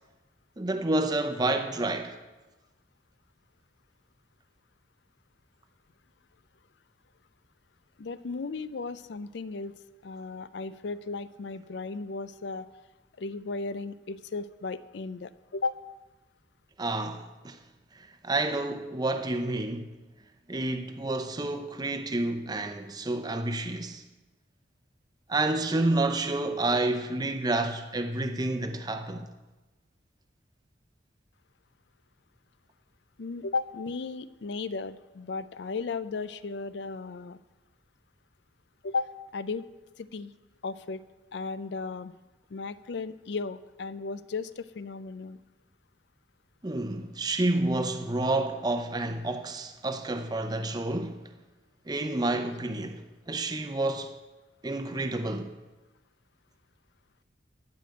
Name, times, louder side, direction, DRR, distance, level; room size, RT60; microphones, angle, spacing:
voice 1, 0.6-2.2 16.8-17.6 18.0-19.9 20.5-24.0 25.3-29.3 46.6-51.2 51.9-54.1 54.6-55.5, right 2 dB, 20° right, 0.7 m, -29 dB
voice 2, 8.0-9.8 10.0-12.7 13.2-15.8 33.2-37.4 38.8-39.6 40.0-40.3 40.6-41.0 41.3-42.1 42.5-45.4, left 4 dB, 70° left, 0.5 m, -35 dB
14.0 x 5.1 x 7.8 m
head